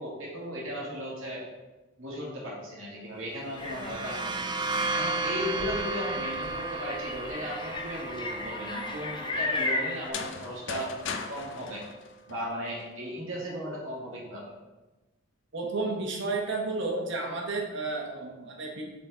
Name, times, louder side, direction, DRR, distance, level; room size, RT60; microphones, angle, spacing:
voice 1, 0.0-1.5 2.0-11.0 11.3-11.8 12.3-14.5, equal, 85° right, -4 dB, 1.9 m, -36 dB
sound 1, 3.5-11.1, right 3 dB, 25° right, 0.3 m, -34 dB
sound 2, 3.6-10.1, left 2 dB, 25° left, 0.6 m, -36 dB
sound 3, 9.9-12.8, left 5 dB, 60° left, 0.6 m, -38 dB
voice 2, 15.5-18.8, right 3 dB, 65° right, 1 dB, 1.3 m, -32 dB
7.2 x 4.1 x 3.9 m, 1.2 s
head